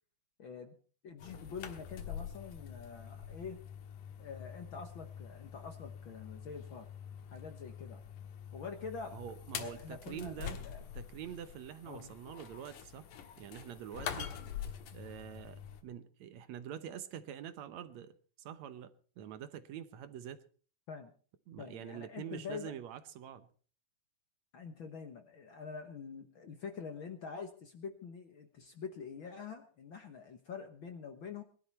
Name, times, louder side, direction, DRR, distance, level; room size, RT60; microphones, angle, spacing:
voice 1, 0.4-0.7 1.0-3.6 4.2-6.9 7.3-8.0 8.5-9.2 9.5-10.8 11.9-12.1 20.9-21.1 21.6-22.7 24.5-31.4, left 5 dB, 55° left, 1.6 m, -46 dB
sound 1, 1.2-15.8, left 8 dB, 85° left, 3.0 m, -46 dB
voice 2, 9.1-10.6 10.9-13.1 13.4-14.3 14.9-18.1 18.4-20.4 21.5-23.5, right 9 dB, 70° right, 2.1 m, -46 dB
21.0 x 12.0 x 4.2 m
omnidirectional pair, 3.5 m